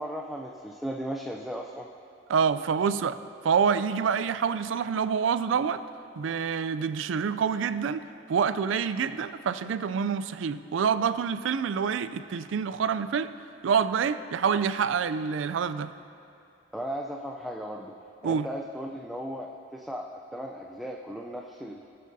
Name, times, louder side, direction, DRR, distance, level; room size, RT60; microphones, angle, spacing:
voice 1, 0.0-1.9 16.7-17.9 18.2-21.8, equal, ahead, -1 dB, 0.4 m, -36 dB
voice 2, 2.3-3.2 3.4-5.8 6.2-8.0 8.3-13.3 13.6-15.9 18.2-18.5, right 6 dB, 75° right, 13 dB, 0.4 m, -27 dB
19.0 x 7.5 x 2.7 m, 2.8 s
head